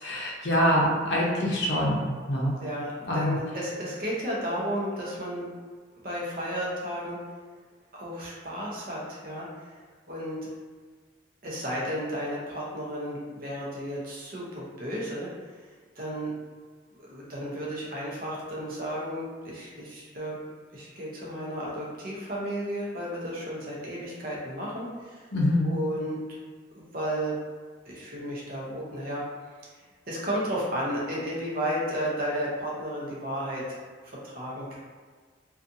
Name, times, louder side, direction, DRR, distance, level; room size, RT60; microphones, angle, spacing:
voice 1, 0.0-2.5 3.1-3.4 25.3-25.7, equal, 60° left, -3 dB, 0.6 m, -25 dB
voice 2, 2.6-5.5 6.0-7.2 7.9-9.7 10.1-10.4 11.4-15.3 16.0-16.3 17.0-20.4 20.7-25.2 25.6-26.2 26.7-27.3 27.9-29.2 30.1-34.8, equal, 45° right, -5 dB, 0.7 m, -33 dB
2.5 x 2.4 x 2.6 m, 1.5 s
head